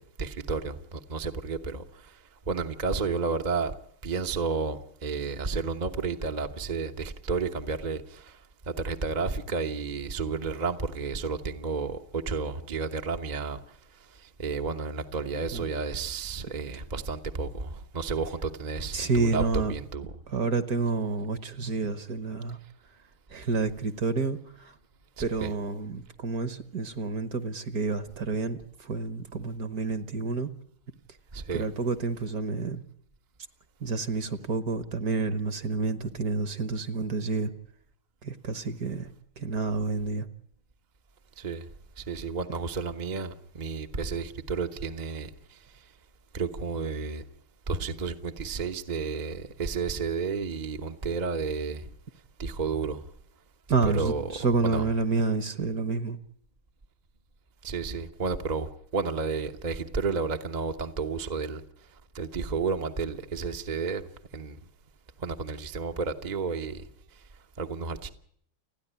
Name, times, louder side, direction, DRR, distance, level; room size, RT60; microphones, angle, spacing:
voice 1, 0.0-2.2 2.5-3.7 4.0-8.4 8.7-13.6 14.1-20.0 25.2-25.5 31.3-31.7 41.4-41.7 42.0-45.6 46.3-47.2 47.7-51.8 52.4-53.0 53.8-54.3 54.6-54.9 57.6-61.6 62.1-64.1 64.3-64.6 65.2-66.9 67.6-68.1, right 4 dB, 30° right, 0.8 m, -31 dB
voice 2, 18.9-19.7 20.3-22.6 23.3-24.7 25.2-30.5 31.5-32.8 33.8-37.5 38.2-39.1 39.4-40.3 53.7-56.2, right 4 dB, 50° right, 1.6 m, -29 dB
29.5 x 10.0 x 10.0 m
omnidirectional pair, 2.2 m